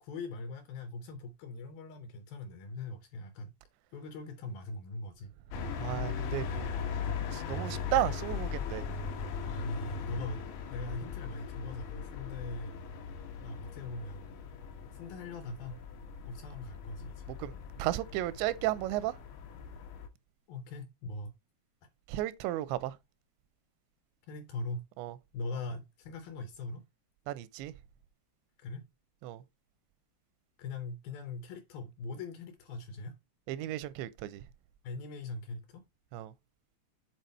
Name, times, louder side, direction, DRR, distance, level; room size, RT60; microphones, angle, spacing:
voice 1, 0.0-3.5 3.9-5.3 9.5-10.4 10.7-12.8 13.4-14.3 14.9-15.8 16.3-17.3 20.5-21.3 24.3-24.8 25.3-26.8 28.6-28.9 30.6-33.2 34.8-35.8, left 2 dB, 75° left, 2.3 m, -41 dB
sound 1, 5.5-20.1, left 6 dB, 90° left, 3.6 m, -39 dB
voice 2, 5.8-6.7 7.3-8.9 17.3-19.1 22.1-22.9 25.0-25.2 27.3-27.7 29.2-29.4 33.5-34.4 36.1-36.3, right 14 dB, 85° right, 2.9 m, -34 dB
8.1 x 3.9 x 4.1 m
omnidirectional pair, 5.0 m